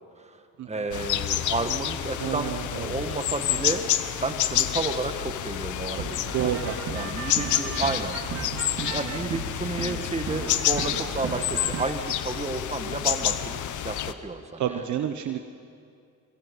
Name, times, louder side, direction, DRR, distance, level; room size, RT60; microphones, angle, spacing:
voice 1, 0.2-3.8 4.2-6.1 6.4-6.5 6.9-8.2 8.8-14.8, right 3 dB, 20° right, 7 dB, 1.7 m, -31 dB
sound 1, 0.9-14.1, left 12 dB, 75° left, 0.9 m, -29 dB
voice 2, 2.2-3.0 6.3-6.8 14.6-15.5, right 10 dB, 70° right, 7 dB, 1.0 m, -29 dB
sound 2, 6.0-11.9, right 10 dB, 50° right, 0.7 m, -36 dB
24.5 x 22.0 x 5.4 m, 2.4 s
cardioid pair, 90°, 30 cm